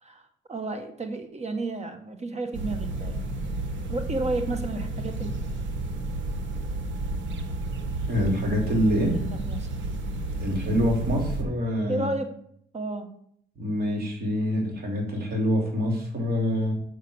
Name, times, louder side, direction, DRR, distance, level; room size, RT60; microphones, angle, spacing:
voice 1, 0.0-3.2 3.9-5.3 9.1-9.7 11.9-12.3 12.7-13.1, right 2 dB, 35° right, 7 dB, 1.3 m, -32 dB
sound 1, 2.5-11.4, right 2 dB, 70° right, 1.5 m, -31 dB
voice 2, 8.1-9.2 10.4-12.1 13.6-16.7, equal, 50° right, 1 dB, 3.3 m, -26 dB
6.6 x 6.5 x 7.1 m, 0.67 s
cardioid pair, 90°, 20 cm